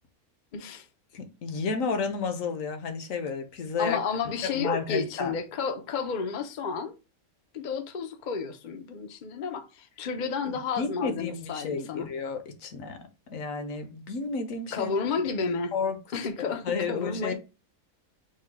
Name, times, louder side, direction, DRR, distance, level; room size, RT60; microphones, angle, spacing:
voice 1, 0.5-0.9 3.8-7.0 7.5-12.1 14.7-15.7 16.1-17.3, left 5 dB, 50° left, 0.5 m, -31 dB
voice 2, 1.1-4.0 4.4-5.4 10.8-13.0 13.3-14.9 15.4-15.5 15.7-16.0 16.4-17.3, left 5 dB, 65° left, 1.2 m, -31 dB
4.7 x 2.2 x 4.5 m
omnidirectional pair, 1.5 m